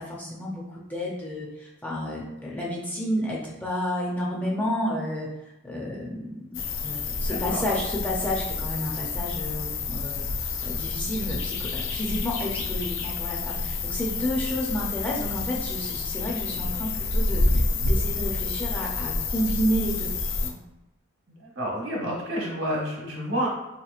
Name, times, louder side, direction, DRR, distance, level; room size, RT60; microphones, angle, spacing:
voice 1, 0.0-20.1 20.4-20.6, equal, 10° left, -4 dB, 0.5 m, -31 dB
sound 1, 6.5-20.5, left 3 dB, 80° left, 0.5 m, -28 dB
voice 2, 7.2-7.6 21.4-23.5, equal, 70° right, -3 dB, 1.1 m, -29 dB
3.6 x 2.9 x 2.4 m, 0.96 s
head